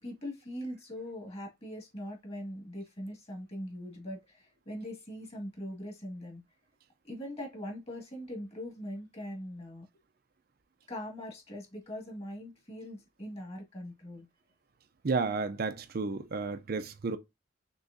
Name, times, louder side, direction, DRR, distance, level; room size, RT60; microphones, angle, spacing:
voice 1, 0.0-6.4 7.0-9.9 10.9-14.3, equal, 35° left, 2.0 m, -41 dB
voice 2, 15.0-17.2, right 4 dB, 55° right, 0.5 m, -32 dB
6.1 x 3.0 x 2.6 m
head